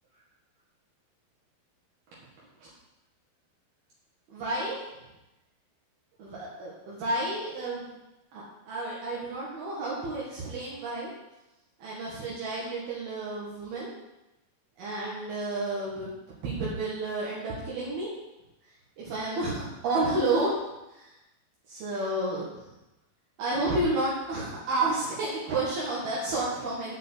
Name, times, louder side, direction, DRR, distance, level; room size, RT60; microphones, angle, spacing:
voice 1, 4.3-4.8 6.2-7.9 8.3-11.1 11.8-13.9 14.8-16.1 16.4-18.1 19.0-20.5 21.7-22.5 23.4-26.9, right 2 dB, 75° right, -6 dB, 3.9 m, -30 dB
7.8 x 7.4 x 8.1 m, 0.97 s
omnidirectional pair, 4.5 m